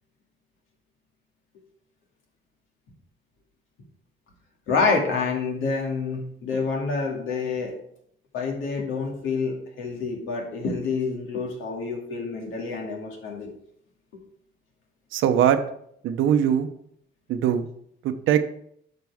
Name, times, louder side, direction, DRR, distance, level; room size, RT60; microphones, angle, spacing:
voice 1, 4.7-7.7 8.3-13.5, left 4 dB, 85° left, 0 dB, 2.4 m, -27 dB
voice 2, 15.1-15.6 16.0-16.7 17.3-17.6 18.0-18.4, right 9 dB, 85° right, 9 dB, 0.8 m, -21 dB
10.5 x 6.0 x 3.5 m, 0.69 s
cardioid pair, 90°, 20 cm